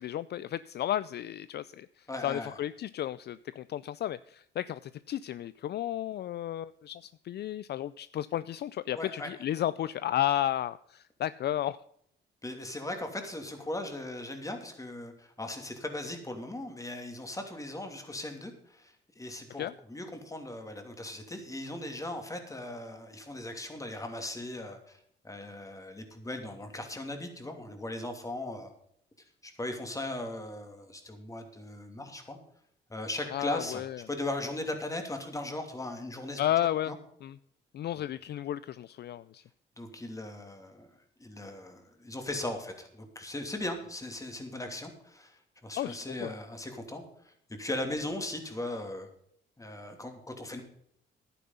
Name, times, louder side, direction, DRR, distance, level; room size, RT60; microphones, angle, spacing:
voice 1, 0.0-11.8 19.6-19.7 33.3-34.0 36.4-36.9 37.2-37.4 37.7-39.4 45.8-46.3, left 12 dB, 55° left, 17 dB, 0.4 m, -33 dB
voice 2, 2.1-2.5 8.9-9.3 12.4-25.0 25.2-28.7 29.4-32.4 32.9-36.4 36.9-37.0 39.8-40.9 41.2-49.1 49.6-50.6, left 1 dB, 15° left, 5 dB, 2.8 m, -38 dB
11.0 x 9.9 x 5.6 m, 0.68 s
cardioid pair, 90°, 20 cm